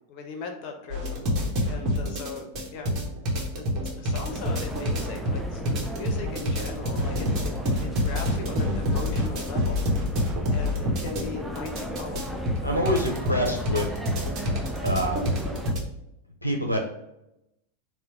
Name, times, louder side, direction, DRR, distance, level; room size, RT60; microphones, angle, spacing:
voice 1, 0.1-1.3 1.7-2.4 2.7-3.0 3.5-7.5 7.8-9.8 10.5-12.5, left 4 dB, 40° left, 3 dB, 0.8 m, -39 dB
sound 1, 0.9-15.8, left 1 dB, 35° right, 1.0 m, -27 dB
sound 2, 4.3-15.7, equal, 5° right, 0.4 m, -36 dB
voice 2, 12.6-13.9 14.8-15.2 16.4-16.8, equal, 85° left, 2 dB, 0.5 m, -26 dB
4.3 x 2.0 x 3.9 m, 0.85 s
figure-of-eight pair, 90°, 0 cm